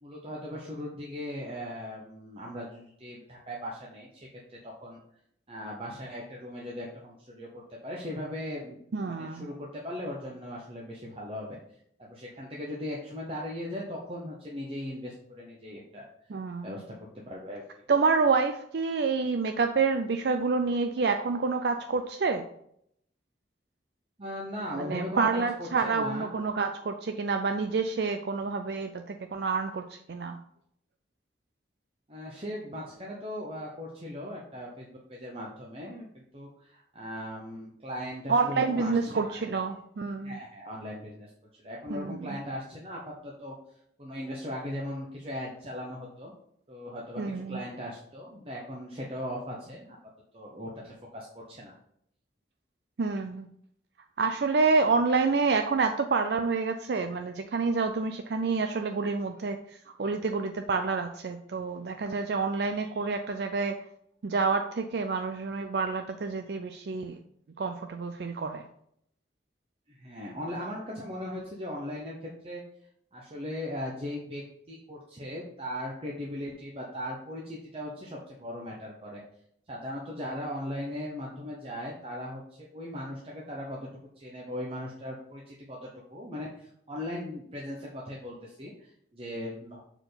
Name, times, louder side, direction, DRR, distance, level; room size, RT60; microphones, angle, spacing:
voice 1, 0.0-5.0 5.5-8.8 9.1-11.6 12.0-16.0 16.6-17.8 24.2-26.3 32.1-39.4 40.2-41.3 41.6-43.5 44.0-46.3 46.7-50.0 50.3-51.7 69.9-72.6 73.1-79.2 79.7-89.8, left 1 dB, 30° right, -3 dB, 0.9 m, -38 dB
voice 2, 8.9-9.5 16.3-16.8 17.9-22.4 24.7-30.4 38.3-40.4 41.9-42.4 47.2-47.6 53.0-53.5 54.2-59.6 60.0-63.8 64.2-67.2 67.6-68.7, right 4 dB, 60° right, 6 dB, 0.4 m, -28 dB
6.7 x 4.5 x 4.0 m, 0.71 s
head